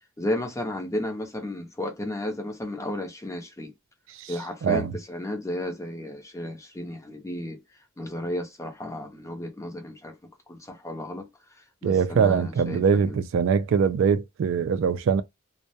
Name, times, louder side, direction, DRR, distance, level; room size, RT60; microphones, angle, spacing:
voice 1, 0.2-3.7 4.3-7.6 8.0-10.1 10.5-11.3 11.8-12.8, left 1 dB, 15° left, 0.6 m, -33 dB
voice 2, 4.6-4.9 11.8-15.2, right 6 dB, 65° right, 0.3 m, -22 dB
2.2 x 2.1 x 2.6 m
head